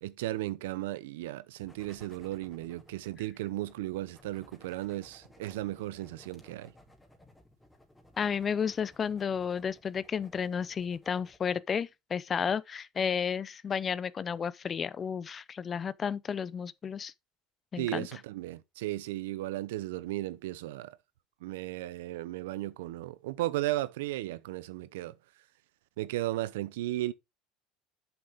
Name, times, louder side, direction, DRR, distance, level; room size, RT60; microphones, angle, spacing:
voice 1, 0.0-6.7 17.8-21.0 21.4-25.2 26.0-27.1, right 16 dB, 90° right, 0.7 m, -35 dB
sound 1, 1.6-11.4, left 1 dB, 10° left, 2.7 m, -59 dB
voice 2, 8.2-17.1 17.7-18.1, left 7 dB, 30° left, 0.6 m, -32 dB
7.7 x 7.0 x 3.6 m
supercardioid pair, 110°, 0 cm